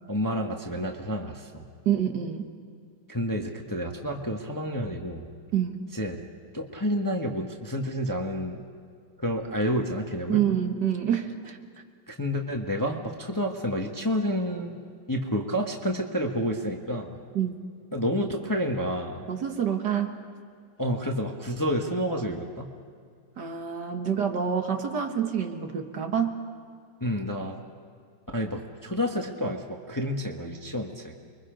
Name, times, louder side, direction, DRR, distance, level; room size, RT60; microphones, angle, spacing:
voice 1, 0.1-1.7 3.1-5.2 5.9-6.2 6.5-8.6 9.2-10.4 12.1-14.8 15.1-17.2 17.9-19.3 20.8-22.7 27.0-27.6 28.3-31.1, equal, 10° left, 2 dB, 1.2 m, -29 dB
voice 2, 1.9-2.5 5.5-5.8 10.3-11.6 17.4-17.5 19.3-20.2 23.4-26.4, right 8 dB, 60° right, 5 dB, 1.9 m, -27 dB
29.5 x 23.0 x 5.2 m, 2.2 s
omnidirectional pair, 2.1 m